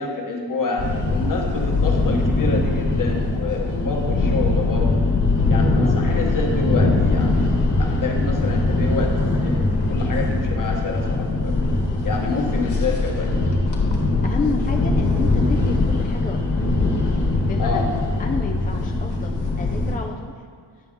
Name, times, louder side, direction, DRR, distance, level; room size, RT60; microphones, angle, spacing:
voice 1, 0.0-5.0 5.5-11.6 12.0-13.3 17.6-17.9, left 3 dB, 45° left, 1 dB, 1.1 m, -28 dB
sound 1, 0.8-20.0, left 2 dB, 65° left, 1.3 m, -21 dB
voice 2, 14.2-16.6 17.5-20.3, left 4 dB, 20° left, 3 dB, 0.3 m, -31 dB
9.7 x 6.0 x 3.6 m, 2.1 s
wide cardioid pair, 150°, 44 cm